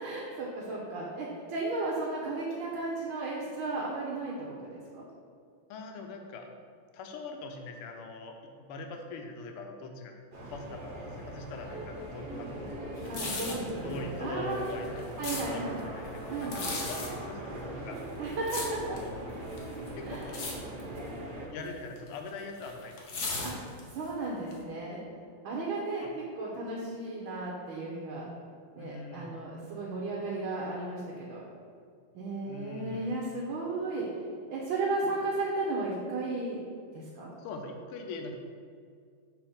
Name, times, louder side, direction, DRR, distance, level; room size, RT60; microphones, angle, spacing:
voice 1, 0.0-5.0 13.1-14.7 15.2-15.8 16.3-16.6 18.2-18.8 20.0-20.3 23.4-23.5 23.9-25.0 25.4-28.3 28.7-31.4 32.1-34.1 34.5-36.6 36.9-37.3, right 2 dB, 70° right, -4 dB, 1.6 m, -34 dB
voice 2, 5.7-6.5 6.9-10.1 10.5-12.7 13.8-15.1 15.4-17.4 17.8-18.0 19.0-19.1 19.9-20.3 21.5-22.9 26.0-26.1 26.5-26.6 28.8-29.3 32.5-33.1 37.4-38.3, left 3 dB, 90° left, 3 dB, 1.6 m, -42 dB
sound 1, 10.3-21.5, right 1 dB, 55° right, 1.4 m, -40 dB
sound 2, 13.0-13.7 14.5-15.4 16.4-17.1 17.9-19.1 19.5-19.9 20.2-20.5 20.8-21.1 22.0-24.0 24.5-24.6, left 3 dB, 55° left, 0.8 m, -36 dB
6.3 x 3.5 x 5.0 m, 2.2 s
omnidirectional pair, 2.4 m